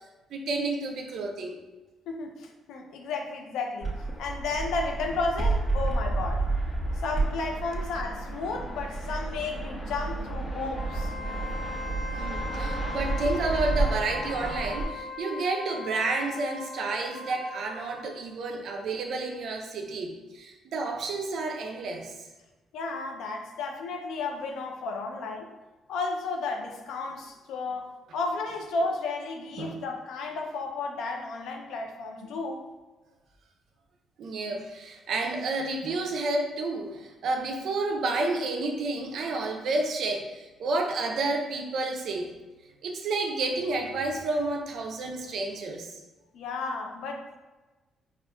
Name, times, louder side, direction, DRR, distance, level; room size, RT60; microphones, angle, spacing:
voice 1, 0.3-1.6 12.1-22.2 29.6-29.8 34.2-42.3 42.8-46.0, right 2 dB, 70° right, 3 dB, 0.5 m, -30 dB
voice 2, 2.1-3.9 4.2-6.4 7.0-11.1 22.7-25.5 25.9-27.9 28.1-32.6 46.3-47.4, left 3 dB, 80° left, 3 dB, 0.4 m, -33 dB
Fixed-wing aircraft airplane, 3.8-14.8, right 3 dB, 5° right, 1.0 m, -31 dB
Wind instrument woodwind instrument, 10.7-18.2, left 3 dB, 30° right, 0.6 m, -39 dB
4.3 x 2.3 x 2.2 m, 1.2 s
cardioid pair, 90°, 0 cm